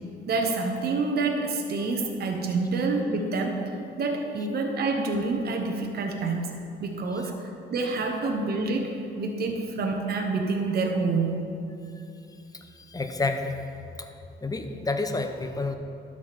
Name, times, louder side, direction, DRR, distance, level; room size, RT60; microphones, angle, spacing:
voice 1, 0.3-3.6 4.0-6.5 6.8-11.4, right 3 dB, 55° right, 2 dB, 0.9 m, -27 dB
voice 2, 12.5-13.5 14.0-14.2 14.4-15.7, left 3 dB, 20° left, 6 dB, 0.7 m, -30 dB
12.0 x 4.8 x 4.2 m, 2.6 s
cardioid pair, 90°, 20 cm